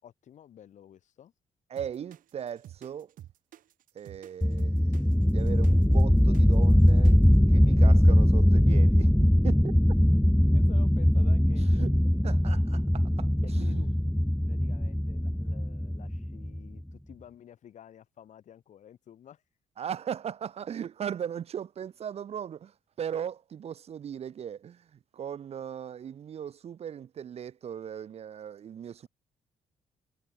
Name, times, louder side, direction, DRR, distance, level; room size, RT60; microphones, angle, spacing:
voice 1, 0.0-1.3 8.3-8.4 10.5-11.9 13.4-13.9 14.5-19.4, left 10 dB, 60° left, 3.6 m, -51 dB
voice 2, 1.7-3.1 3.9-5.0 5.3-7.2 7.5-9.7 11.8-11.9 12.2-13.9 19.8-24.9 25.1-29.1, right 8 dB, 50° right, 0.8 m, -38 dB
sound 1, 1.8-7.4, right 12 dB, 75° right, 7.3 m, -49 dB
sound 2, 4.4-16.8, equal, 5° left, 0.6 m, -22 dB
cardioid pair, 105°, 14 cm